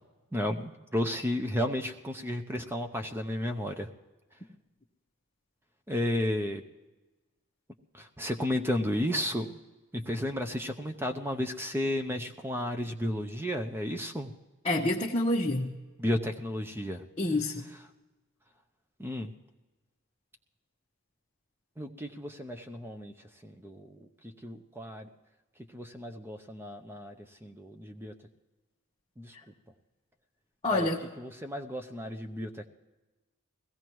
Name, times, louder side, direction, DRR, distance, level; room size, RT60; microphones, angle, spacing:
voice 1, 0.3-3.9 5.9-6.6 7.9-9.6 9.9-14.3 16.0-17.0 19.0-19.3 21.8-23.1 23.4-25.1 25.7-28.1 29.2-29.3 30.7-30.9 31.2-32.7, left 1 dB, 10° right, 5 dB, 0.6 m, -33 dB
voice 2, 14.6-15.7 17.2-17.7 30.6-31.1, left 1 dB, 25° left, -4 dB, 0.9 m, -27 dB
21.5 x 16.0 x 3.1 m, 1.2 s
head